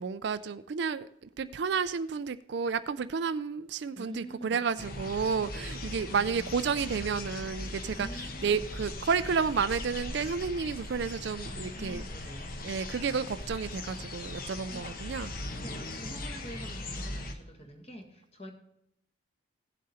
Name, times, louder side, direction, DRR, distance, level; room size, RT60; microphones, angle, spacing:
voice 1, 0.0-12.0 12.6-15.3, right 5 dB, 60° right, 13 dB, 0.4 m, -31 dB
voice 2, 3.9-4.6 5.4-5.8 7.9-8.7 11.4-12.5 14.7-14.9 15.6-18.5, equal, 30° left, 4 dB, 1.6 m, -46 dB
sound 1, 4.8-17.3, left 2 dB, 45° left, 1.1 m, -39 dB
16.0 x 7.5 x 4.2 m, 0.77 s
head